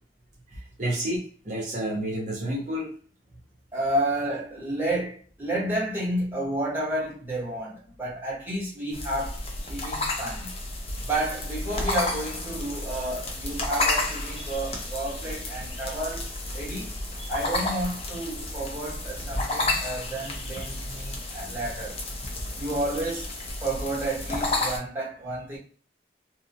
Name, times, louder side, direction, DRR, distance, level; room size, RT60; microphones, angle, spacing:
voice 1, 0.5-2.9, right 1 dB, 40° right, 0.6 m, -30 dB
voice 2, 3.7-10.5 11.0-17.0 17.3-22.0 22.5-23.3 23.6-25.6, right 1 dB, 10° right, 0.9 m, -31 dB
sound 1, 8.9-24.8, left 2 dB, 35° left, 0.5 m, -31 dB
2.8 x 2.0 x 2.6 m
head